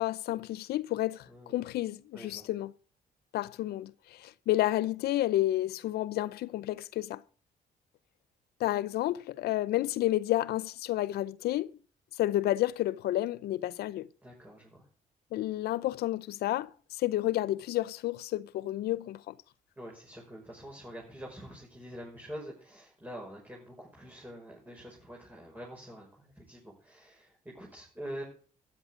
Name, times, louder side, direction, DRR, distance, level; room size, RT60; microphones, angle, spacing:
voice 1, 0.0-2.7 3.3-7.2 8.6-11.7 12.2-14.1 15.3-16.7 17.0-19.3, left 15 dB, 80° left, 0.7 m, -30 dB
voice 2, 1.3-1.6 2.1-2.5 14.2-14.8 19.8-28.2, equal, 10° right, 5.8 m, -45 dB
12.5 x 11.0 x 3.8 m
cardioid pair, 85°, 16 cm